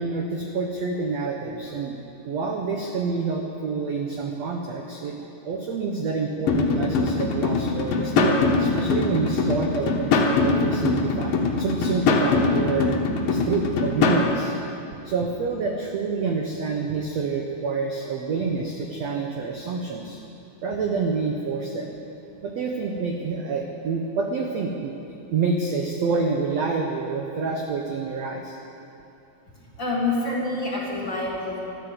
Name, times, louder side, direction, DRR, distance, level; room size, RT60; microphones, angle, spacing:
voice 1, 0.0-2.0 2.2-5.1 5.4-12.9 13.3-14.5 15.0-20.2 20.6-21.9 22.4-28.6, right 4 dB, 85° right, 1 dB, 1.5 m, -27 dB
sound 1, 6.5-14.3, left 3 dB, 70° left, 2.8 m, -22 dB
voice 2, 29.6-31.6, left 2 dB, 40° left, -4 dB, 1.9 m, -27 dB
14.0 x 13.0 x 7.9 m, 2.7 s
omnidirectional pair, 4.6 m